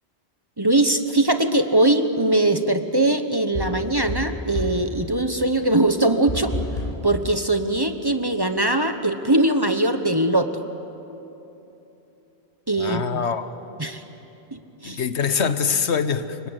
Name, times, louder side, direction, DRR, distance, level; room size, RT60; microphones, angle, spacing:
voice 1, 0.6-6.5 7.0-10.5 12.7-13.2 13.8-14.0 14.5-15.0, right 1 dB, 20° right, 7 dB, 1.1 m, -21 dB
sound 1, 3.5-4.9 6.3-7.1, left 1 dB, 35° left, 4.9 m, -29 dB
voice 2, 12.8-13.5 14.8-16.5, left 6 dB, 75° left, 11 dB, 1.3 m, -24 dB
29.0 x 24.5 x 8.1 m, 3.0 s
omnidirectional pair, 1.1 m